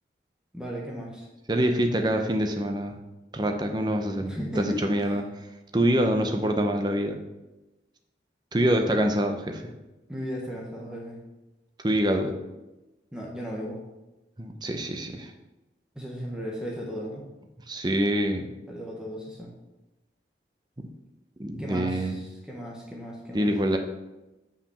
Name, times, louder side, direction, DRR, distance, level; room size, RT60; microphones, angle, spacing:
voice 1, 0.5-1.3 4.3-5.2 10.1-11.2 13.1-13.8 15.9-17.2 18.7-19.5 21.6-23.5, equal, 5° right, -3 dB, 1.1 m, -35 dB
voice 2, 1.5-3.0 3.3-5.2 5.7-7.2 8.5-9.6 11.8-12.3 14.4-15.3 17.7-18.5 20.8-20.9 21.4-22.2 23.3-23.8, right 1 dB, 25° right, 5 dB, 0.7 m, -25 dB
5.9 x 5.0 x 6.5 m, 1.0 s
head